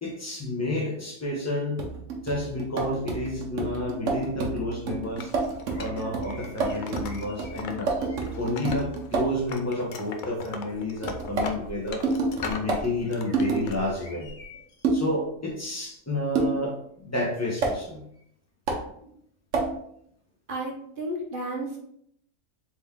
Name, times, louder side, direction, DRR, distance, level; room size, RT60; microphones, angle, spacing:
voice 1, 0.0-1.8 2.2-5.3 5.7-7.9 8.4-12.0 12.4-14.3 14.9-18.0 19.0-19.1, left 1 dB, 15° left, -2 dB, 0.8 m, -30 dB
sound 1, 1.8-9.4 11.0-13.7 14.8-15.1 16.3-16.6 17.6-17.8 18.7-18.9 19.5-19.8, right 3 dB, 75° right, 1.1 m, -29 dB
Wood, 5.2-7.8 8.1-9.2 9.5-12.7 13.1-13.8, left 4 dB, 70° left, 0.4 m, -39 dB
sound 2, 5.7-8.5 9.3-9.7 10.3-15.0 15.5-15.6 17.4-17.5, left 1 dB, 50° left, 1.0 m, -48 dB
voice 2, 20.5-21.8, right 1 dB, 45° right, -1 dB, 0.9 m, -32 dB
3.7 x 2.9 x 3.5 m, 0.70 s
omnidirectional pair, 1.3 m